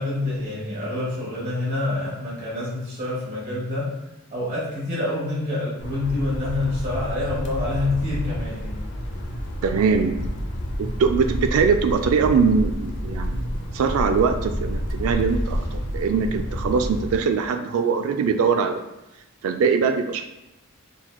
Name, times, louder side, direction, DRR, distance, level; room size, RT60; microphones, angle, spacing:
voice 1, 0.0-3.9 4.3-8.8, left 2 dB, 35° right, -8 dB, 1.3 m, -27 dB
sound 1, 5.8-17.2, equal, 55° left, 0.6 m, -29 dB
voice 2, 9.6-10.2 10.8-13.5 13.7-18.8 19.4-20.3, right 5 dB, 75° right, 7 dB, 0.3 m, -22 dB
4.4 x 3.9 x 2.2 m, 0.94 s
head